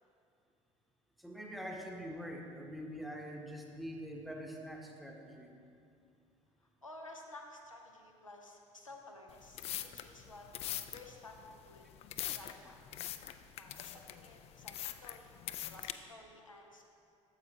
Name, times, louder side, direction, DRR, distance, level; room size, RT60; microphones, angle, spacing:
voice 1, 1.2-5.5, equal, ahead, 1 dB, 0.9 m, -44 dB
voice 2, 6.6-10.5 10.9-11.8 12.3-12.8 13.1-13.3 13.6-15.3 15.7-16.8, left 2 dB, 90° left, 1 dB, 0.6 m, -53 dB
sound 1, 9.3-15.9, left 12 dB, 40° left, 0.3 m, -43 dB
8.8 x 7.2 x 2.8 m, 2.5 s
figure-of-eight pair, 55°, 16 cm